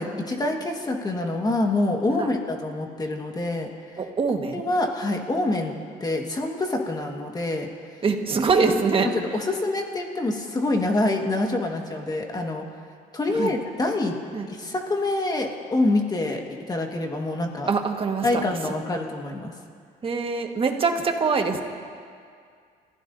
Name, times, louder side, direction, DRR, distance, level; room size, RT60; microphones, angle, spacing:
voice 1, 0.0-3.7 4.5-5.7 6.0-7.7 9.3-12.7 13.1-14.2 14.5-17.7 18.2-19.5, left 2 dB, 25° left, 2 dB, 1.6 m, -26 dB
voice 2, 4.0-4.6 8.0-9.4 13.3-13.5 14.3-14.5 17.7-18.4 18.8-18.9 20.0-21.6, right 4 dB, 30° right, 3 dB, 1.5 m, -24 dB
30.0 x 15.5 x 2.7 m, 2.2 s
cardioid pair, 110°, 17 cm